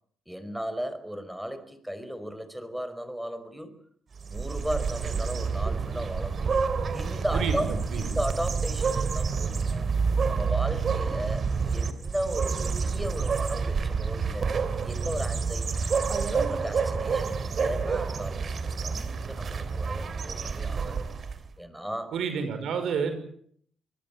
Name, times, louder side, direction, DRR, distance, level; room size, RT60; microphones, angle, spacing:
voice 1, 0.3-3.7 4.3-6.6 6.9-9.9 10.3-14.5 14.8-16.0 16.3-18.5 18.8-21.0 21.6-22.2, equal, 5° right, 11 dB, 5.2 m, -35 dB
sound 1, 4.2-21.5, right 5 dB, 45° right, 3.3 m, -28 dB
voice 2, 7.3-8.0 22.1-23.1, right 6 dB, 70° right, 8 dB, 5.7 m, -29 dB
25.5 x 21.0 x 9.0 m, 0.64 s
cardioid pair, 90°, 0 cm